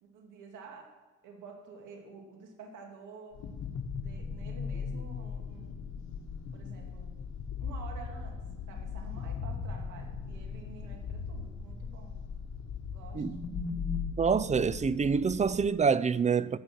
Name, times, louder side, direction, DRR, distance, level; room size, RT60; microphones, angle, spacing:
voice 1, 0.0-0.9 1.2-3.4 4.0-5.7 6.5-7.2 7.6-8.4 8.7-12.2 12.9-13.3, right 4 dB, 90° right, 2.4 m, -50 dB
sound 1, 3.3-15.7, left 5 dB, 65° left, 1.7 m, -38 dB
voice 2, 14.2-16.6, right 6 dB, 25° right, 0.4 m, -26 dB
12.5 x 6.9 x 7.4 m
cardioid pair, 90°, 30 cm